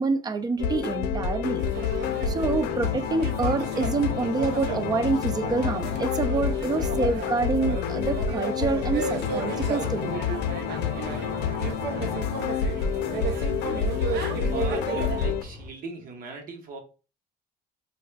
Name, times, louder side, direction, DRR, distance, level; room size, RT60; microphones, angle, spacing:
voice 1, 0.0-1.6 2.3-10.4, right 4 dB, 25° right, 0.4 m, -27 dB
sound 1, 0.6-15.4, left 7 dB, 85° left, 0.4 m, -28 dB
sound 2, 1.6-15.3, right 5 dB, 75° right, 0.6 m, -34 dB
sound 3, 2.0-15.7, left 2 dB, 20° left, 1.4 m, -43 dB
voice 2, 14.3-16.8, right 3 dB, 55° right, 1.0 m, -40 dB
4.9 x 2.2 x 2.3 m
cardioid pair, 110°, 17 cm